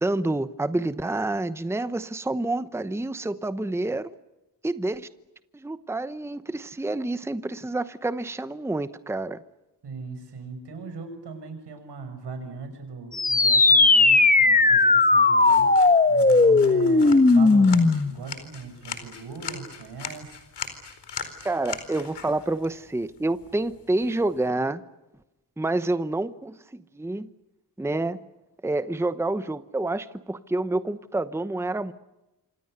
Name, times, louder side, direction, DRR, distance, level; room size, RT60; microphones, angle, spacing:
voice 1, 0.0-4.1 4.6-5.1 5.5-9.4 21.4-24.8 25.6-27.3 27.8-28.2 28.6-31.9, right 2 dB, 5° right, 13 dB, 0.9 m, -28 dB
voice 2, 9.8-20.3, right 4 dB, 90° right, 7 dB, 6.7 m, -39 dB
sound 1, 13.1-18.2, left 3 dB, 20° left, 1.3 m, -17 dB
sound 2, 15.4-24.5, left 7 dB, 90° left, 4.4 m, -40 dB
28.0 x 26.0 x 6.7 m, 1.0 s
wide cardioid pair, 115°, 40 cm